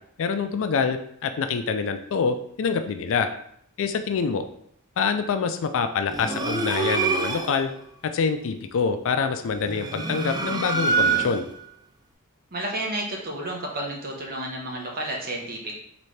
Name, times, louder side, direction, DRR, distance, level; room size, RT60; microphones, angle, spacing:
voice 1, 0.2-3.3 3.8-4.5 5.0-7.7 8.0-11.5, left 5 dB, 60° left, 9 dB, 0.4 m, -26 dB
sound 1, 6.1-7.7 9.5-11.6, right 4 dB, 20° right, 0.3 m, -26 dB
voice 2, 12.5-15.7, right 1 dB, 45° right, -1 dB, 0.9 m, -31 dB
4.0 x 3.3 x 3.2 m, 0.68 s
head